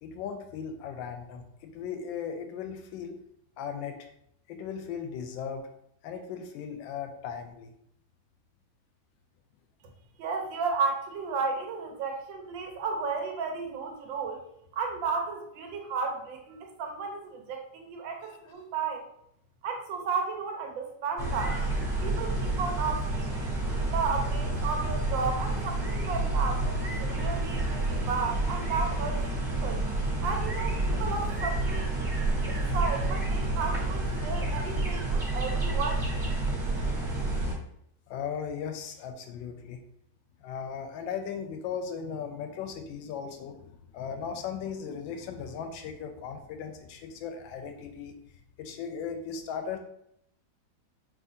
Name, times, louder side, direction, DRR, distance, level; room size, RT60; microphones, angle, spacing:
voice 1, 0.0-3.2 3.6-4.1 4.5-5.7 6.0-7.7 38.1-39.8 40.4-48.1 48.6-49.8, left 7 dB, 80° left, 6 dB, 1.3 m, -37 dB
voice 2, 10.2-14.4 14.7-19.1 19.6-21.6 22.0-23.4 23.9-29.9 30.2-32.0 32.5-36.1, right 4 dB, 75° right, 3 dB, 1.4 m, -33 dB
sound 1, 21.2-37.5, right 2 dB, 45° right, 1.0 m, -29 dB
5.0 x 3.1 x 2.6 m, 0.73 s
omnidirectional pair, 2.2 m